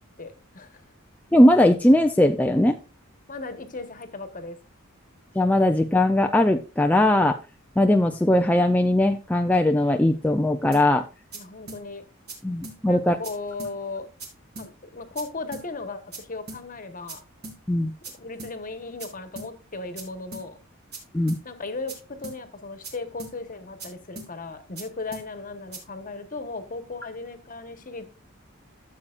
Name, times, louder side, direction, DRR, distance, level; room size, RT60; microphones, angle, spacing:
voice 1, 0.2-0.8 3.3-4.6 11.3-12.1 12.9-14.1 14.6-17.2 18.1-20.6 21.4-28.1, left 3 dB, 40° left, 9 dB, 1.2 m, -36 dB
voice 2, 1.3-2.8 5.4-7.4 7.8-11.1 12.4-13.2 17.7-17.9 21.1-21.4, left 1 dB, 10° left, 4 dB, 0.4 m, -19 dB
sound 1, 10.7-10.9 11.3-11.4 11.7-11.8 12.3-12.4 12.6-12.8 13.2-13.3 13.6-13.7 14.2-14.3 14.6-14.7 15.2-15.3 15.5-15.7 16.1-16.2 16.5-16.6 17.1-17.2 17.4-17.6 18.0-18.1 18.4-18.5 19.0-19.1 19.4-19.5 20.0-20.1 20.3-20.5 20.9-21.0 21.3-21.4 21.9-22.0 22.2-22.4 22.8-22.9 23.2-23.3 23.8-23.9 24.2-24.3 24.8-24.9 25.1-25.3 25.7-25.8, right 2 dB, 50° right, 3.2 m, -39 dB
14.0 x 7.4 x 2.5 m, 0.30 s
head